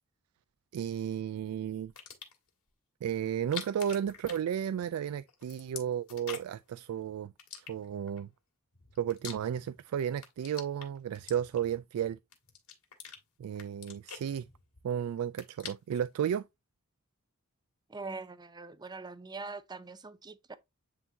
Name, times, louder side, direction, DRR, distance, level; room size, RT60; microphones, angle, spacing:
voice 1, 0.7-1.9 3.0-8.3 9.0-12.2 13.4-14.4 14.8-16.5, right 9 dB, 75° right, 0.3 m, -33 dB
sound 1, 1.8-2.5 3.3-5.0 5.3-6.7 7.4-8.2 8.7-9.8 10.1-11.8 12.3-13.2 13.5-14.9 15.2-16.1, left 8 dB, 90° left, 2.2 m, -46 dB
voice 2, 17.9-20.6, right 3 dB, 20° right, 0.5 m, -43 dB
9.5 x 3.7 x 2.7 m
head